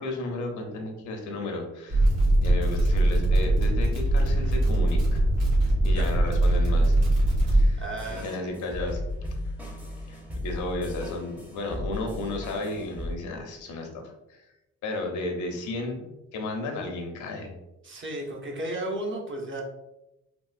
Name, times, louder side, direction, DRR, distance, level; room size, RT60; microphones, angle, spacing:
voice 1, 0.0-2.1 2.4-5.2 5.8-7.0 7.5-7.8 8.2-9.0 10.1-14.4 14.8-17.6, left 2 dB, 80° left, 3 dB, 0.7 m, -33 dB
sound 1, 1.9-7.6, right 1 dB, 80° right, 1.3 m, -22 dB
sound 2, 7.4-13.1, left 1 dB, 5° right, 0.6 m, -36 dB
voice 2, 7.8-8.6 17.8-19.6, right 1 dB, 40° right, 0 dB, 0.8 m, -34 dB
3.7 x 2.3 x 2.4 m, 0.93 s
cardioid pair, 90°, 30 cm